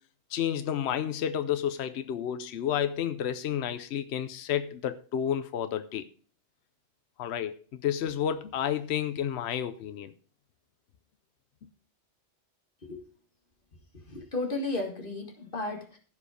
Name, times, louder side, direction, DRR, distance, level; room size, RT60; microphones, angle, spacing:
voice 1, 0.3-6.1 7.2-10.1, left 9 dB, 70° left, 0.9 m, -31 dB
voice 2, 14.1-16.0, left 2 dB, 50° left, 2.1 m, -34 dB
15.5 x 5.3 x 5.0 m
omnidirectional pair, 1.2 m